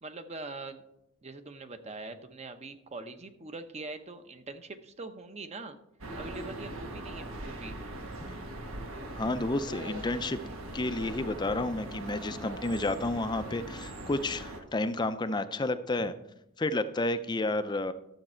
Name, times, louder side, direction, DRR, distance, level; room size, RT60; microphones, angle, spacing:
voice 1, 0.0-0.8 1.2-5.8 6.2-7.8, right 3 dB, 30° right, 9 dB, 0.8 m, -43 dB
sound 1, 6.0-14.6, right 1 dB, 85° right, 1.4 m, -41 dB
voice 2, 9.1-10.4 10.7-16.1 16.6-17.9, left 2 dB, 20° left, 11 dB, 0.4 m, -31 dB
12.0 x 7.3 x 4.4 m, 0.81 s
head